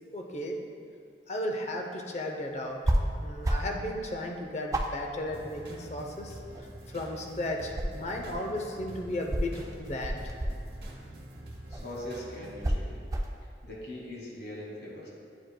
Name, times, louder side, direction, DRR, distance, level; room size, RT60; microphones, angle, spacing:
voice 1, 0.1-0.6 1.3-2.8 3.2-6.4 6.9-10.2, left 1 dB, 40° left, 2 dB, 0.6 m, -35 dB
sound 1, 2.8-3.1 3.4-3.8 4.2-4.3 4.7-6.0 6.4-7.2 7.5-8.5 9.3-10.9 11.7-11.9 12.6-13.4, right 1 dB, 20° right, 0.3 m, -30 dB
sound 2, 5.3-12.7, right 1 dB, 65° right, 0.9 m, -46 dB
voice 2, 11.7-13.0 13.6-15.1, left 1 dB, 60° left, -4 dB, 1.5 m, -41 dB
9.2 x 5.0 x 2.2 m, 2.2 s
head